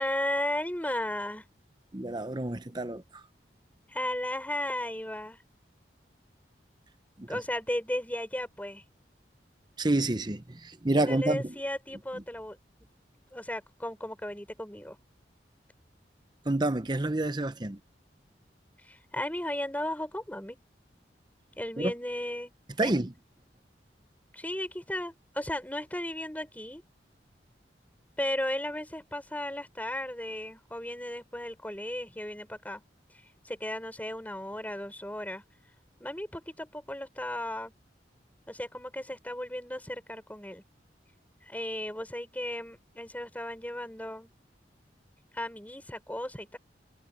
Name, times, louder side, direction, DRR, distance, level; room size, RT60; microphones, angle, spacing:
voice 1, 0.0-1.4 3.9-5.4 7.3-8.8 10.9-12.6 13.3-15.0 18.8-20.6 21.6-22.5 22.8-22.9 24.3-26.8 28.2-32.8 33.4-35.4 36.0-37.7 38.5-40.6 41.4-44.3 45.3-46.6, left 1 dB, 10° left, 5.8 m, -35 dB
voice 2, 1.9-3.2 7.2-7.3 9.8-11.5 16.4-17.8 21.8-21.9 22.8-23.1, right 2 dB, 25° right, 0.8 m, -29 dB
head